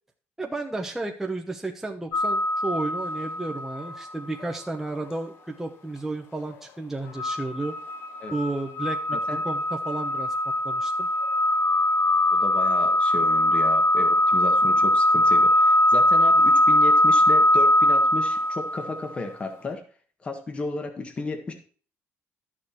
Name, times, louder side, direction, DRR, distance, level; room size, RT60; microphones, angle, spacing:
voice 1, 0.4-7.7 8.3-9.2 9.4-10.3 10.6-11.1, right 2 dB, 5° right, 1 dB, 0.9 m, -32 dB
sound 1, 2.1-4.0 4.4-4.5 7.2-19.0, left 1 dB, 60° left, 1.0 m, -21 dB
voice 2, 9.1-9.4 12.3-19.8 20.2-21.5, left 3 dB, 25° left, 6 dB, 1.6 m, -34 dB
11.5 x 6.6 x 4.5 m, 0.41 s
cardioid pair, 140°, 4 cm